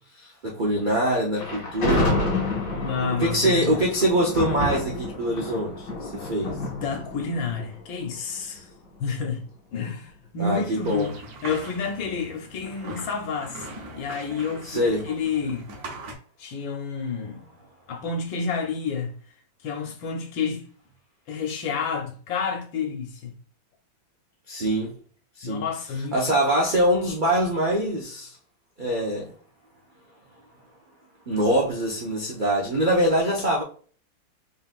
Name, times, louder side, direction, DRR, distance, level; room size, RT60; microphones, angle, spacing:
voice 1, 0.2-2.1 3.2-6.6 10.4-11.1 14.6-15.1 24.5-24.9 25.4-25.6 26.1-28.4 28.8-29.3 31.3-33.6, right 1 dB, 80° right, 0.4 m, -24 dB
Thunder, 1.4-8.6, left 2 dB, 65° left, 2.2 m, -29 dB
voice 2, 2.7-3.8 6.4-8.7 9.0-9.4 9.7-11.1 11.4-15.7 16.4-17.4 17.9-19.1 19.6-20.6 21.3-23.3 25.4-26.2, left 5 dB, 85° left, 1.7 m, -30 dB
sound 1, 10.8-16.1, right 2 dB, 60° right, 1.3 m, -40 dB
3.8 x 3.8 x 2.5 m
omnidirectional pair, 2.0 m